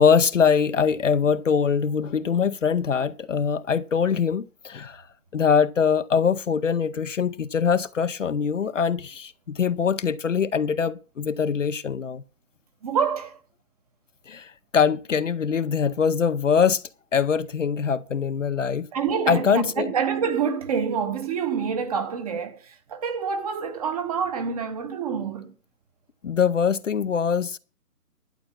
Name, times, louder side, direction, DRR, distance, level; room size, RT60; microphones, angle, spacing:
voice 1, 0.0-5.0 5.3-12.2 14.3-16.8 17.1-18.9 19.3-19.9 26.2-27.6, left 6 dB, 55° left, 0.7 m, -23 dB
voice 2, 12.8-13.4 18.9-25.5, right 6 dB, 25° right, 1.1 m, -27 dB
11.5 x 8.1 x 5.8 m
figure-of-eight pair, 145°, 46 cm